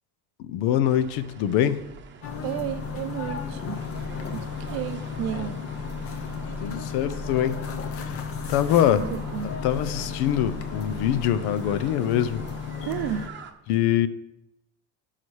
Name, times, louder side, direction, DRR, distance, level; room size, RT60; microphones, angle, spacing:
voice 1, 0.4-1.8 6.6-7.6 8.0-8.2 8.5-9.1 9.4-12.5 13.7-14.1, left 10 dB, 80° left, 0.7 m, -24 dB
sound 1, 0.8-13.5, right 6 dB, 30° right, 0.8 m, -46 dB
sound 2, 2.2-13.3, left 5 dB, 35° left, 0.8 m, -34 dB
voice 2, 2.4-3.9 4.3-5.7 9.0-9.6 12.9-13.3, right 11 dB, 70° right, 0.6 m, -32 dB
12.5 x 5.8 x 3.2 m
cardioid pair, 120°, 37 cm